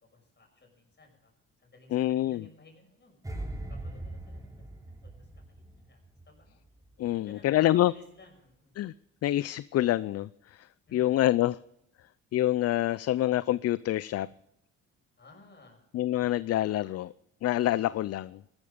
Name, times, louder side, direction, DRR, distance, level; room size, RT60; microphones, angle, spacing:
voice 1, 0.1-1.3 1.6-3.2 3.7-5.3 5.6-6.0 6.3-6.6 7.1-8.7 10.9-11.1 15.2-15.8, left 3 dB, 35° left, 2 dB, 6.2 m, -55 dB
voice 2, 1.9-2.5 7.0-7.9 8.8-8.9 9.2-10.7 10.9-11.6 12.3-14.3 15.9-17.1 17.4-18.4, left 14 dB, 55° left, 19 dB, 0.4 m, -26 dB
sound 1, 3.2-6.4 6.7-7.0, right 1 dB, 10° right, 3.3 m, -40 dB
15.5 x 12.5 x 5.1 m, 0.81 s
cardioid pair, 90°, 30 cm